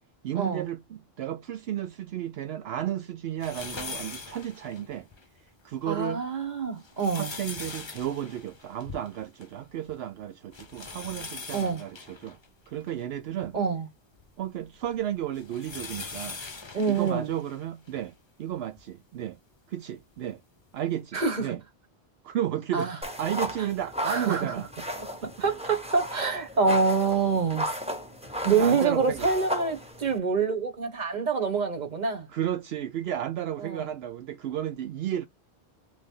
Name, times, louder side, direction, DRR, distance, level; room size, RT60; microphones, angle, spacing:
voice 1, 0.2-5.1 5.4-6.3 7.1-12.4 12.7-13.6 14.4-16.4 16.9-19.4 19.7-20.4 20.7-21.6 22.2-24.7 25.2-25.3 28.5-29.3 32.3-35.3, right 11 dB, 75° right, 0.8 m, -33 dB
sound 1, 3.4-5.3 5.8-5.9 6.6-9.6 9.9-10.0 10.5-13.5 14.2-18.1 18.8-18.9 20.2-20.3, left 4 dB, 30° left, 0.7 m, -41 dB
voice 2, 5.8-7.3 11.5-11.8 13.5-13.9 16.7-17.3 21.1-21.5 22.7-23.0 24.0-24.5 25.2-27.7 28.4-32.3 33.6-33.9, right 5 dB, 45° right, 1.3 m, -26 dB
sound 2, 23.0-30.2, equal, 5° right, 1.2 m, -35 dB
3.4 x 3.3 x 3.7 m
omnidirectional pair, 1.1 m